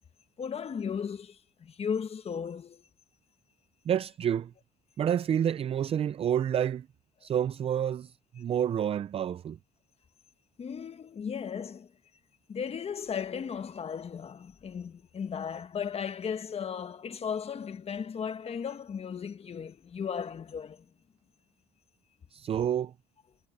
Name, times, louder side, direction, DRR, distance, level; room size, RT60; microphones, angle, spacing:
voice 1, 0.4-2.8 10.6-11.9 12.5-20.8, left 7 dB, 35° left, 1.3 m, -36 dB
voice 2, 3.9-4.5 5.0-6.9 7.2-9.6 22.3-22.9, right 9 dB, 35° right, 0.4 m, -29 dB
cardioid pair, 110°, 17 cm